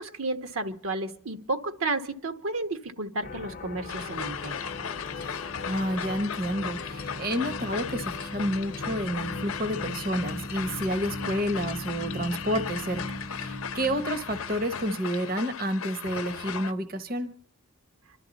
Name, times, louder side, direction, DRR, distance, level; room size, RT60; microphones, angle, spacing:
voice 1, 0.0-4.7, right 2 dB, 75° right, 8 dB, 1.2 m, -32 dB
sound 1, 3.2-15.0, left 2 dB, 40° left, 0.6 m, -39 dB
sound 2, 3.9-16.7, left 7 dB, 80° left, 0.6 m, -37 dB
voice 2, 5.2-17.3, equal, 45° right, 10 dB, 0.8 m, -30 dB
27.0 x 12.0 x 4.0 m, 0.63 s
head